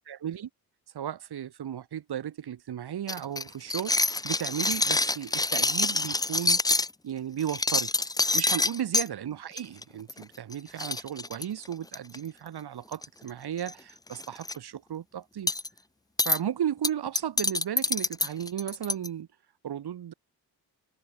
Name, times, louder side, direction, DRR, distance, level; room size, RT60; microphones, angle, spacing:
voice 1, 0.1-0.5 0.9-6.6 7.0-7.9 8.3-15.5 16.2-19.3 19.6-20.1, right 10 dB, 85° right, 4.8 m, -35 dB
sound 1, 3.1-6.9 7.4-9.1 9.6-9.8 10.1-10.2 10.5-10.6 10.8-12.2 12.9-13.3 13.6-13.7 14.1-14.5 15.5-15.7 16.2-16.4 16.8-19.1, left 2 dB, 10° left, 0.5 m, -26 dB
cardioid pair, 95°, 38 cm